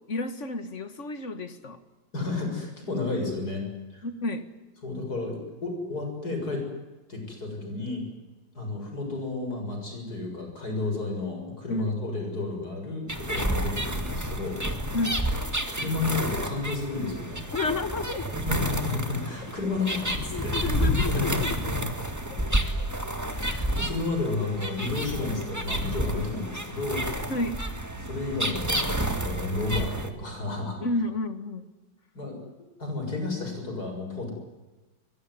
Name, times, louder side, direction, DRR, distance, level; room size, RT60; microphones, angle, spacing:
voice 1, 0.1-1.8 4.0-4.5 11.7-12.0 14.9-15.2 17.5-18.4 19.4-19.7 20.3-21.5 21.8-21.9 22.3-22.4 22.8-22.9 27.3-27.6 30.8-31.7, left 2 dB, 40° left, 10 dB, 2.0 m, -31 dB
voice 2, 2.1-3.7 3.9-4.1 4.8-6.7 7.1-8.0 8.5-14.6 15.7-17.5 18.4-21.5 23.3-27.0 28.0-30.8 32.1-32.4 32.8-34.3, left 3 dB, 55° left, 4 dB, 7.5 m, -31 dB
sound 1, 13.1-30.1, right 1 dB, 10° right, 2.1 m, -30 dB
23.5 x 22.0 x 9.8 m, 1.2 s
omnidirectional pair, 2.0 m